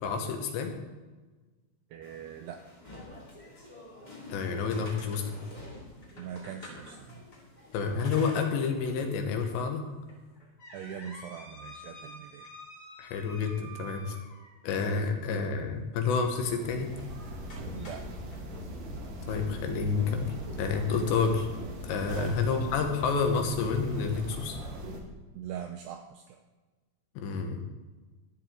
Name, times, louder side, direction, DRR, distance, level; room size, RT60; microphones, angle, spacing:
voice 1, 0.0-0.8 4.3-5.2 7.7-9.8 13.0-14.2 14.6-16.9 19.3-21.5 21.8-24.6 27.2-27.6, left 5 dB, 75° left, 4 dB, 3.2 m, -29 dB
voice 2, 1.9-2.6 6.2-7.2 10.7-12.5 17.7-18.1 22.1-22.6 25.3-26.4, right 8 dB, 85° right, 6 dB, 2.3 m, -41 dB
sound 1, 2.0-8.2, left 1 dB, 15° left, 1.6 m, -49 dB
sound 2, 4.4-7.4 8.0-9.0 9.4-9.5 10.1-14.7 16.9-17.1 17.5-18.4, equal, 30° left, 2.0 m, -49 dB
sound 3, 16.1-25.0, equal, 60° right, 1.7 m, -40 dB
13.5 x 10.5 x 3.7 m, 1.3 s
omnidirectional pair, 5.4 m